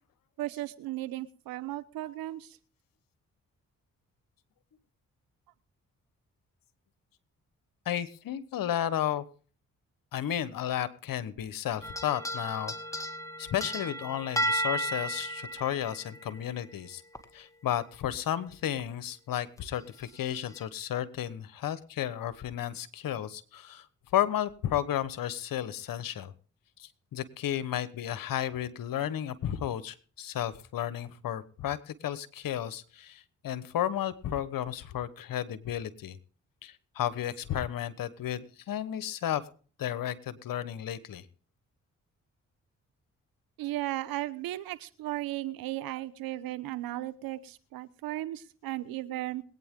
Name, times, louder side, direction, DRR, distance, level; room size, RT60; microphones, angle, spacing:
voice 1, 0.4-2.6 43.6-49.4, right 15 dB, 85° right, 15 dB, 0.9 m, -35 dB
voice 2, 7.8-9.2 10.1-12.7 13.4-17.0 17.3-23.9 24.1-26.3 26.8-36.2 36.6-39.4 39.8-41.2, left 11 dB, 75° left, 15 dB, 1.2 m, -33 dB
sound 1, 11.8-16.7 17.1-17.2 18.8-18.9 19.6-19.7 20.4-20.6, right 1 dB, 10° left, 2.2 m, -34 dB
22.0 x 9.2 x 3.7 m, 0.40 s
supercardioid pair, 50°, 34 cm